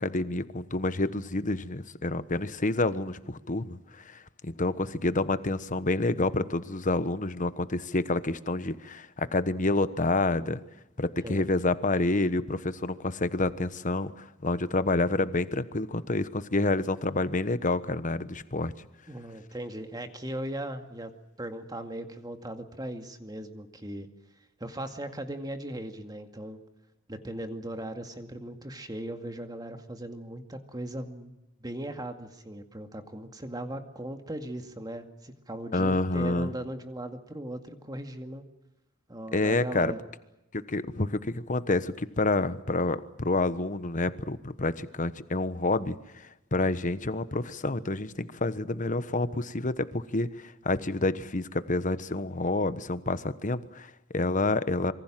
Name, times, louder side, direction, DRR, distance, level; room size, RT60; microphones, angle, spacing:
voice 1, 0.0-10.6 11.0-18.7 35.7-36.5 39.3-39.9 40.5-46.0 46.5-54.9, left 2 dB, 40° left, 13 dB, 1.2 m, -28 dB
voice 2, 6.1-6.6 11.2-11.5 19.1-21.1 21.4-24.1 24.6-26.6 27.1-31.3 31.6-38.4 39.1-40.0, right 1 dB, 20° right, 6 dB, 2.2 m, -38 dB
26.5 x 24.0 x 7.6 m, 0.91 s
head